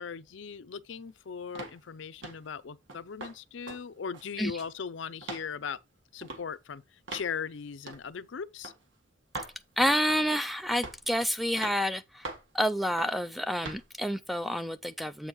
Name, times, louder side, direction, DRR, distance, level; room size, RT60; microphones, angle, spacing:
voice 1, 0.0-5.8 6.1-8.7, left 6 dB, 65° left, 0.5 m, -39 dB
sound 1, 1.6-1.8 2.2-2.5 2.9-3.4 3.7-3.8 4.1-4.8 5.2-5.5 6.2-6.4 7.1-7.3 7.9-8.1 8.6-8.8 9.3-9.6 10.1-10.4 10.8-11.1 11.6-11.8 12.2-12.5 13.0-13.2 13.6-13.8, right 3 dB, 65° right, 1.6 m, -41 dB
voice 2, 9.8-15.3, equal, ahead, 0.3 m, -29 dB
7.9 x 6.3 x 3.1 m
head